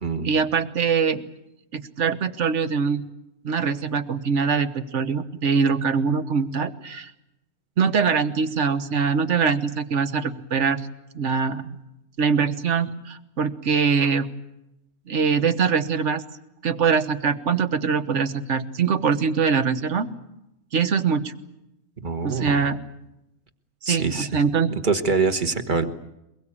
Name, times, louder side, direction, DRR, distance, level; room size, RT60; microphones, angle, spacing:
voice 1, 0.2-1.2 1.7-3.0 3.4-7.1 7.8-10.8 11.1-11.6 12.2-14.3 15.1-16.2 16.6-20.1 20.7-21.3 22.2-22.8 23.8-24.7, right 6 dB, 60° right, 11 dB, 1.5 m, -23 dB
voice 2, 22.0-22.7 23.8-24.3 24.8-25.9, right 4 dB, 35° right, 8 dB, 1.5 m, -24 dB
23.0 x 21.5 x 8.6 m, 0.89 s
omnidirectional pair, 1.5 m